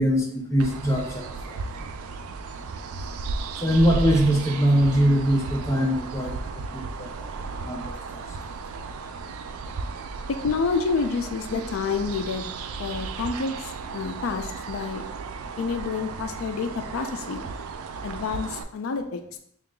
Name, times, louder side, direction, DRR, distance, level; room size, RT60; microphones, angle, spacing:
voice 1, 0.0-1.6 3.6-6.4 6.7-7.4 7.7-8.2 14.0-14.2, equal, 15° left, -1 dB, 0.5 m, -23 dB
sound 1, 0.6-18.6, right 4 dB, 85° right, 0.3 m, -35 dB
voice 2, 10.4-12.5 12.8-15.0 15.6-17.4 18.0-19.4, left 4 dB, 75° left, 7 dB, 0.4 m, -28 dB
3.7 x 2.4 x 3.7 m, 0.67 s
head